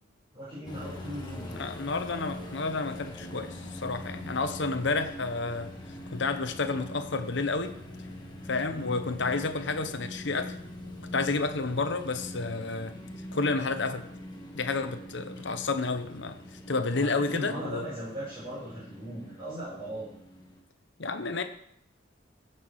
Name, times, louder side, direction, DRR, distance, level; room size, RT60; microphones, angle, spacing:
voice 1, 0.3-1.6 8.7-8.9 16.9-20.1, equal, 25° right, -11 dB, 5.7 m, -38 dB
sound 1, 0.7-20.6, left 1 dB, 25° left, 1.8 m, -43 dB
voice 2, 1.5-5.7 6.1-7.7 8.5-10.6 11.1-12.9 13.3-14.0 14.5-16.4 16.7-17.8 21.0-21.4, left 3 dB, 65° left, 8 dB, 1.0 m, -30 dB
16.0 x 6.1 x 4.8 m, 0.73 s
head